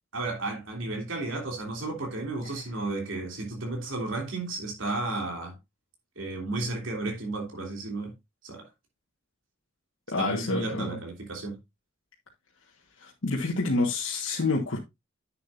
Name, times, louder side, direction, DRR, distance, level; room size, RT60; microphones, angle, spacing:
voice 1, 0.1-5.6 6.2-8.1 8.4-8.7 10.2-11.6, right 2 dB, 85° right, 3.0 m, -33 dB
voice 2, 10.1-11.0 13.0-14.8, left 3 dB, 90° left, 1.4 m, -28 dB
10.0 x 7.5 x 2.6 m
head